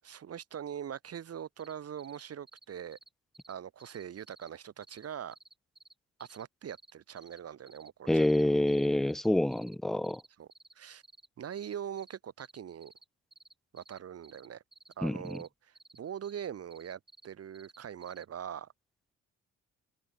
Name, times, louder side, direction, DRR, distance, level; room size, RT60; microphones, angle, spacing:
voice 1, 0.0-3.0 3.5-5.4 6.2-8.4 10.4-10.5 10.7-11.0 11.4-12.9 13.7-14.6 15.0-18.7, right 9 dB, 55° right, 1.7 m, -42 dB
sound 1, 1.6-1.7 2.0-2.2 2.5-2.7 2.9-3.1 3.3-3.5 3.8-4.5 4.8-5.1 5.3-5.9 6.2-7.4 7.7-7.9 8.2-8.4 8.7-9.7 10.0-10.7 11.0-11.3 11.5-13.0 13.3-14.9 15.2-15.5 15.7-16.0 16.2-17.3 17.5-18.2, right 2 dB, 15° right, 7.4 m, -57 dB
voice 2, 8.1-10.2 15.0-15.4, left 1 dB, ahead, 0.3 m, -27 dB
open air
cardioid pair, 90°, 30 cm